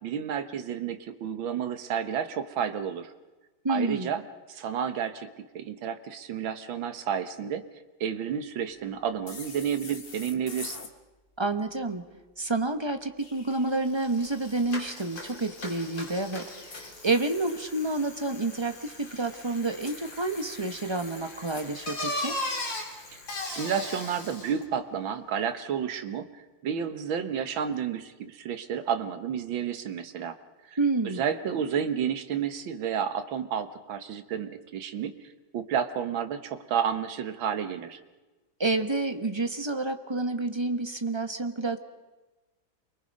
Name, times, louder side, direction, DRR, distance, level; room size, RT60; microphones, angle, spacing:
voice 1, 0.0-3.1 3.7-4.2 4.5-5.3 5.5-7.7 8.0-10.8 23.5-30.4 30.7-30.8 31.0-35.1 35.5-38.0, right 8 dB, 75° right, 9 dB, 2.0 m, -31 dB
voice 2, 3.6-4.1 11.4-12.0 12.4-22.4 30.8-31.2 38.6-41.8, right 2 dB, 20° right, 7 dB, 0.8 m, -29 dB
sound 1, 9.3-10.9 13.0-14.3 16.5-18.0 19.8-21.7, left 4 dB, 30° left, 1.5 m, -46 dB
Bicycle, 13.5-13.6 13.8-24.6, left 2 dB, 65° left, 3.9 m, -38 dB
28.5 x 23.5 x 5.3 m, 1.2 s
omnidirectional pair, 2.2 m